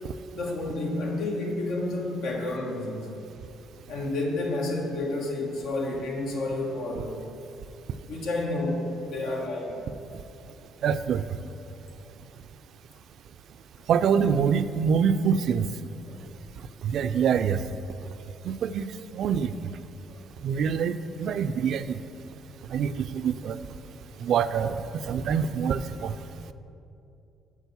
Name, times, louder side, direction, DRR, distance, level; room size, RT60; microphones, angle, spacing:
voice 1, 0.3-3.1 3.9-7.1 8.1-9.9 13.8-13.9 16.1-16.2 20.1-20.2, left 2 dB, 85° left, 0 dB, 1.3 m, -30 dB
voice 2, 10.8-11.2 13.9-15.7 16.8-17.6 18.4-18.9 19.1-19.5 20.4-22.0 22.7-23.6 24.2-26.1, right 7 dB, 65° right, 12 dB, 0.3 m, -25 dB
8.2 x 4.3 x 7.0 m, 2.7 s
cardioid pair, 90°, 0 cm